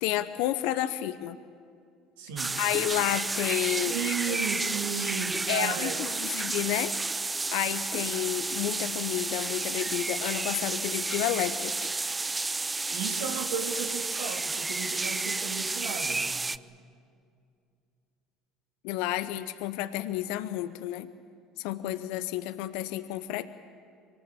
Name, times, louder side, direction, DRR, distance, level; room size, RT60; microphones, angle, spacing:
voice 1, 0.0-1.4 2.6-4.4 5.5-7.0 7.5-11.7 18.8-21.1 21.6-23.5, left 14 dB, 75° left, 13 dB, 0.8 m, -31 dB
voice 2, 2.2-2.6 3.8-6.0 12.9-16.3, right 7 dB, 80° right, 4 dB, 2.4 m, -34 dB
sound 1, 2.4-16.6, right 3 dB, 20° right, 0.5 m, -31 dB
23.5 x 19.5 x 8.4 m, 2.3 s
hypercardioid pair, 75°, 0 cm